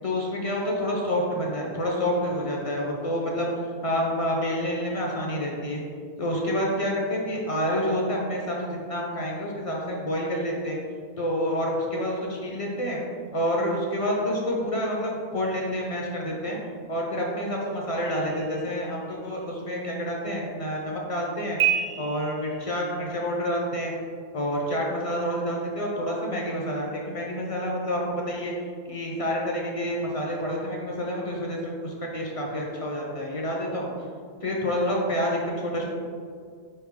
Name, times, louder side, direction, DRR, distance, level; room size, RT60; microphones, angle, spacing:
voice 1, 0.0-3.5 3.8-5.8 6.2-10.8 11.2-13.0 13.3-16.6 16.9-21.6 22.0-23.9 24.3-28.5 28.9-33.9 34.4-35.9, equal, 45° left, -2 dB, 0.5 m, -28 dB
sound 1, 18.0-19.3 21.6-23.1, right 9 dB, 60° right, 0.8 m, -30 dB
4.5 x 3.2 x 3.5 m, 2.1 s
omnidirectional pair, 1.1 m